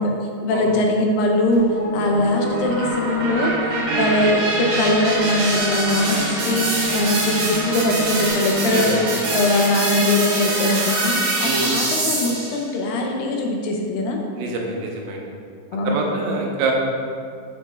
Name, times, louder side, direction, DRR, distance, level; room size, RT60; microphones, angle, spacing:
voice 1, 0.0-9.0 9.3-14.2 15.7-16.2, left 1 dB, 85° left, 1 dB, 2.6 m, -21 dB
sound 1, 1.5-12.6, right 1 dB, 65° right, 3.2 m, -24 dB
voice 2, 11.4-11.7 14.4-15.2 15.9-16.7, right 4 dB, 85° right, 0 dB, 2.6 m, -25 dB
7.9 x 7.8 x 2.4 m, 2.2 s
omnidirectional pair, 3.9 m